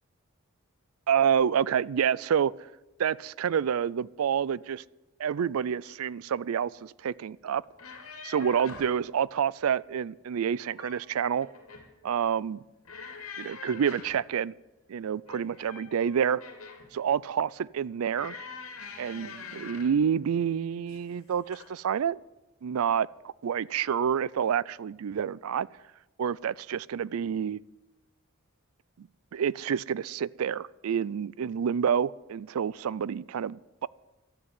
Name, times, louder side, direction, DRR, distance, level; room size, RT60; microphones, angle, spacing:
voice 1, 1.1-2.5 3.0-4.8 5.2-7.6 8.2-11.5 12.0-12.6 13.4-14.5 14.9-16.4 16.9-18.3 19.0-22.2 22.6-23.1 23.4-25.7 26.2-27.6 29.0-33.9, right 8 dB, 90° right, 23 dB, 0.4 m, -28 dB
sound 1, 7.6-9.0 10.4-11.1 11.4-11.9 12.8-14.3 15.2-16.9 18.1-20.0 20.9-21.2 21.5-21.7, left 4 dB, 90° left, 2.3 m, -44 dB
12.5 x 9.8 x 9.5 m, 1.0 s
head